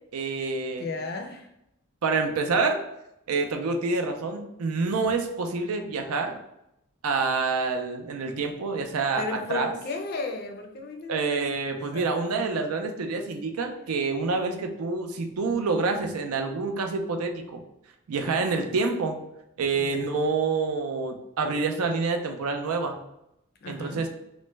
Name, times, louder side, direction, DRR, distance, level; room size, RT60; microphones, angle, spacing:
voice 1, 0.1-0.9 2.0-2.8 3.3-6.4 7.0-9.2 9.5-9.7 11.1-17.6 18.1-19.2 19.6-23.0 23.7-24.1, right 4 dB, 85° right, 5 dB, 0.5 m, -27 dB
voice 2, 0.8-1.5 9.2-11.5 11.9-12.5 19.7-20.1 23.6-24.1, left 3 dB, 45° left, 3 dB, 0.4 m, -35 dB
3.1 x 2.1 x 3.2 m, 0.82 s
head